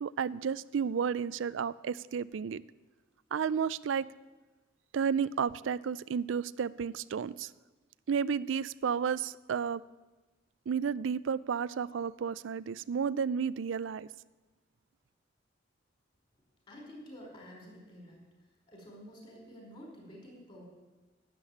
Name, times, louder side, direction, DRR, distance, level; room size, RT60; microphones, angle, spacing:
voice 1, 0.0-2.6 3.3-4.1 4.9-7.5 8.1-9.8 10.7-14.1, right 6 dB, 90° right, 18 dB, 0.4 m, -32 dB
voice 2, 16.7-18.2 18.7-20.6, equal, 30° left, 0 dB, 4.8 m, -50 dB
12.0 x 8.3 x 9.9 m, 1.2 s
head